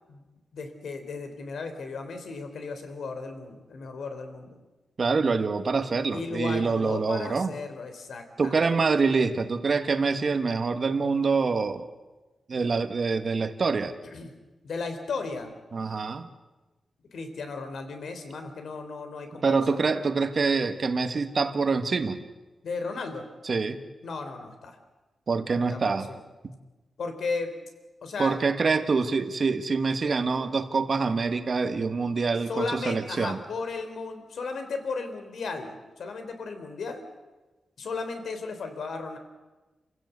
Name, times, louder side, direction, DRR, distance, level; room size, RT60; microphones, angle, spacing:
voice 1, 0.5-4.6 6.1-8.7 14.1-14.3 14.6-15.5 17.1-19.8 22.6-23.3 24.0-24.8 25.5-26.2 27.0-27.5 28.0-28.4 32.5-37.0 37.8-39.2, left 4 dB, 75° left, 7 dB, 3.4 m, -35 dB
voice 2, 5.0-7.5 8.4-11.9 12.5-13.9 15.7-16.3 19.4-22.2 23.4-23.8 25.3-26.1 28.2-33.4, right 4 dB, 45° right, 8 dB, 1.6 m, -25 dB
28.5 x 16.0 x 8.2 m, 1.2 s
wide cardioid pair, 130°, 0 cm